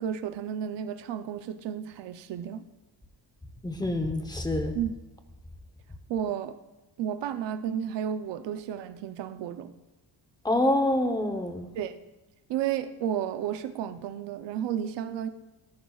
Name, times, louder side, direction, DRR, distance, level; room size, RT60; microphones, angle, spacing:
voice 1, 0.0-2.6 4.7-4.9 6.1-6.6 7.0-9.8 11.7-11.9 12.5-15.3, right 9 dB, 75° right, 9 dB, 0.7 m, -32 dB
voice 2, 3.6-4.8 10.4-11.7, left 1 dB, 10° left, 6 dB, 0.9 m, -26 dB
18.5 x 13.5 x 2.4 m, 1.1 s
cardioid pair, 175°, 42 cm